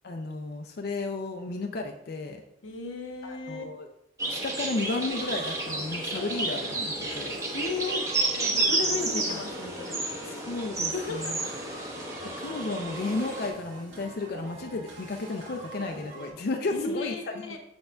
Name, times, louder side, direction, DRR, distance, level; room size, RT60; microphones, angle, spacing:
voice 1, 0.0-2.4 3.2-3.9 4.3-7.4 8.9-9.4 10.5-11.4 12.2-17.2, left 3 dB, 50° left, 4 dB, 0.4 m, -33 dB
voice 2, 2.6-3.6 7.5-8.1 8.3-10.2 10.9-11.5 16.7-17.6, left 3 dB, 90° left, 3 dB, 0.9 m, -35 dB
sound 1, 4.2-13.5, right 2 dB, 15° right, 0.9 m, -31 dB
sound 2, 5.1-16.3, right 2 dB, 75° right, 1.8 m, -45 dB
6.7 x 6.6 x 2.3 m, 0.83 s
head